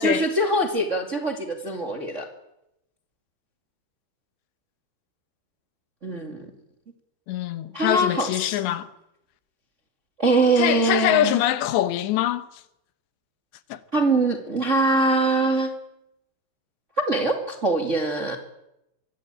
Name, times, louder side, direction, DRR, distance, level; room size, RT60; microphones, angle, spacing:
voice 1, 0.0-2.3 6.0-6.5 7.7-8.6 10.2-11.4 13.9-15.7 17.0-18.4, right 2 dB, 25° right, 1.6 m, -23 dB
voice 2, 7.3-8.9 10.6-12.5 13.7-13.8, left 12 dB, 85° left, 3.4 m, -24 dB
25.0 x 23.0 x 8.9 m
omnidirectional pair, 4.9 m